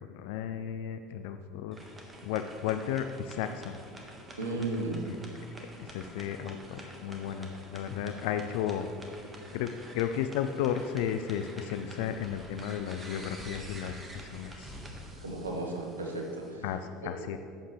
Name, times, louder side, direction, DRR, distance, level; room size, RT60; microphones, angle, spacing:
voice 1, 0.0-1.8 2.2-3.8 5.1-5.2 5.8-8.9 9.5-14.8 16.6-17.4, left 9 dB, 60° left, 8 dB, 0.3 m, -34 dB
sound 1, 1.7-16.5, right 1 dB, 20° right, 1.5 m, -48 dB
voice 2, 4.4-5.0 15.2-16.6 17.0-17.1, right 2 dB, 80° right, 1 dB, 1.3 m, -34 dB
12.5 x 7.8 x 3.3 m, 2.3 s
figure-of-eight pair, 65°, 0 cm